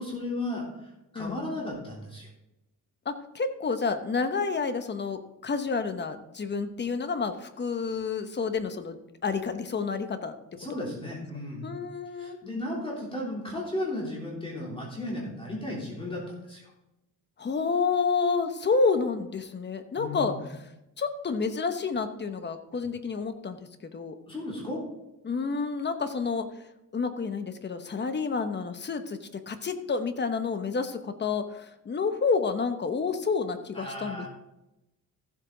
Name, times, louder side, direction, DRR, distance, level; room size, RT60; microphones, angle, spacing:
voice 1, 0.0-2.3 10.5-11.7 12.2-16.7 20.0-20.5 24.3-24.8 33.7-34.3, left 1 dB, 15° left, -4 dB, 3.3 m, -35 dB
voice 2, 3.1-10.3 11.6-12.4 17.4-20.3 21.0-23.6 23.9-24.1 25.2-26.5 26.9-29.2 29.5-34.3, left 4 dB, 30° left, 8 dB, 1.0 m, -29 dB
14.5 x 7.8 x 3.9 m, 0.92 s
cardioid pair, 140°, 34 cm